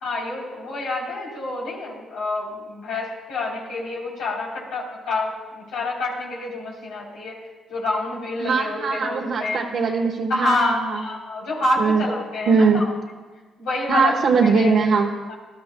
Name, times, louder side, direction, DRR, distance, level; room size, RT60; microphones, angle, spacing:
voice 1, 0.0-7.4 7.7-9.6 10.3-12.9 13.6-14.7 15.3-15.4, left 2 dB, 80° left, -3 dB, 3.4 m, -27 dB
voice 2, 8.4-11.0 11.8-12.0 12.5-12.8 13.9-15.1, right 4 dB, 65° right, -1 dB, 1.1 m, -20 dB
19.5 x 12.0 x 2.2 m, 1.3 s
cardioid pair, 90°, 0 cm